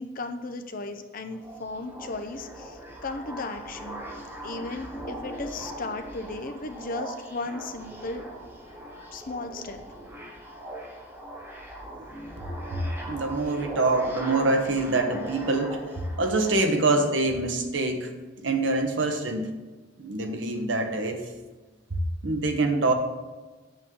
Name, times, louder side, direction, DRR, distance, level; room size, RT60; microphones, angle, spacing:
voice 1, 0.0-4.0 4.4-8.3 9.1-9.8, left 2 dB, 50° left, 6 dB, 0.8 m, -35 dB
sound 1, 1.3-16.5, right 1 dB, 15° right, 1.4 m, -40 dB
voice 2, 12.7-15.8 16.2-18.1 18.4-19.5 20.0-21.2 21.9-22.9, right 2 dB, 85° right, 5 dB, 1.1 m, -25 dB
8.1 x 8.0 x 3.8 m, 1.2 s
head